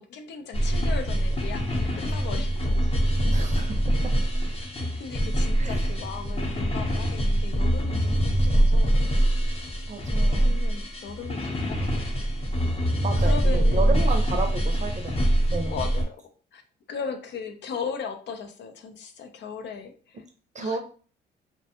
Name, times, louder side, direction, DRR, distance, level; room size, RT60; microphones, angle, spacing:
voice 1, 0.0-2.9 5.0-9.0 10.2-12.1 13.2-14.1 15.7-16.2 16.5-16.6 16.9-20.2 20.6-20.8, left 6 dB, 60° left, 6 dB, 0.5 m, -37 dB
sound 1, 0.5-16.0, right 1 dB, 30° left, 0.8 m, -24 dB
voice 2, 3.3-3.8 5.6-5.8 9.9-10.6 13.0-15.3 15.5-15.7 20.5-20.8, right 3 dB, 35° right, 5 dB, 0.6 m, -32 dB
2.5 x 2.2 x 2.7 m, 0.40 s
cardioid pair, 90°, 20 cm